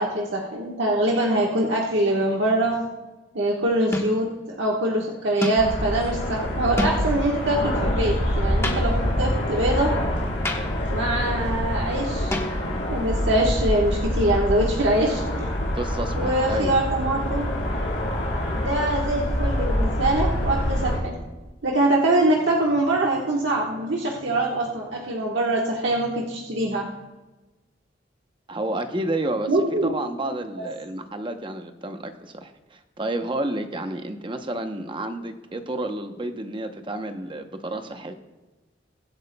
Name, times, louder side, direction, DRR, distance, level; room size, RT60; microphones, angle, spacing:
voice 1, 0.0-2.8 3.3-9.9 10.9-12.4 12.9-15.5 16.1-17.5 18.5-21.1 21.6-26.9 29.5-29.9, right 1 dB, 80° right, -2 dB, 1.3 m, -23 dB
sound 1, 2.1-2.5 3.9-4.3 5.4-5.8 6.8-7.3 8.6-9.2 10.4-10.9 12.3-12.9, left 1 dB, 15° left, 1.1 m, -30 dB
sound 2, 5.6-21.0, equal, 85° left, 3.4 m, -26 dB
voice 2, 15.7-16.8 28.5-29.5 29.8-38.1, right 1 dB, 25° right, 7 dB, 0.7 m, -30 dB
22.5 x 8.0 x 2.2 m, 1.2 s
head